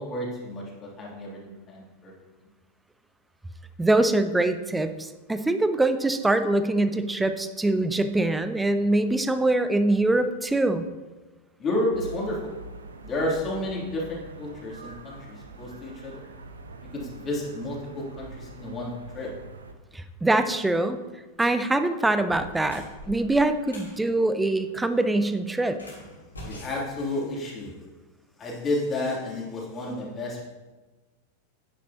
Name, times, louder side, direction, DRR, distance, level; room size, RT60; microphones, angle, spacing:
voice 1, 0.0-2.1 11.6-12.5 13.0-16.3 16.9-19.3 26.4-27.7 28.4-30.4, left 1 dB, 25° left, -3 dB, 2.8 m, -31 dB
voice 2, 3.8-10.8 19.9-21.0 21.4-25.9, right 2 dB, 5° right, 10 dB, 0.6 m, -24 dB
sound 1, 11.9-19.7, right 2 dB, 75° right, 0.7 m, -44 dB
sound 2, 21.4-21.6 22.2-24.0 25.7-27.7, equal, 75° left, 3.2 m, -43 dB
10.5 x 9.4 x 2.9 m, 1.2 s
figure-of-eight pair, 90°, 0 cm